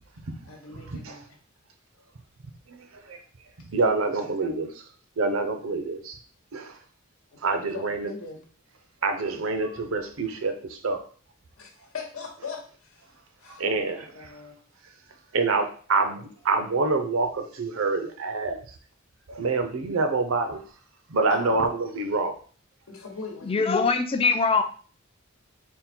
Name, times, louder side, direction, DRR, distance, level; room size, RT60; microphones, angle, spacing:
voice 1, 0.5-1.2 7.3-8.5 11.6-13.0 13.4-14.5 21.3-21.6 22.9-23.6, left 4 dB, 85° left, 1 dB, 1.0 m, -40 dB
voice 2, 2.7-3.2 3.7-4.7 5.2-6.2 6.5-6.7 7.4-8.1 9.0-11.0 13.6-14.0 15.3-18.6 19.3-20.6 21.1-22.4, right 3 dB, 75° right, 6 dB, 0.6 m, -26 dB
voice 3, 23.4-24.6, left 4 dB, 25° left, 7 dB, 0.4 m, -22 dB
3.7 x 2.2 x 4.3 m, 0.42 s
head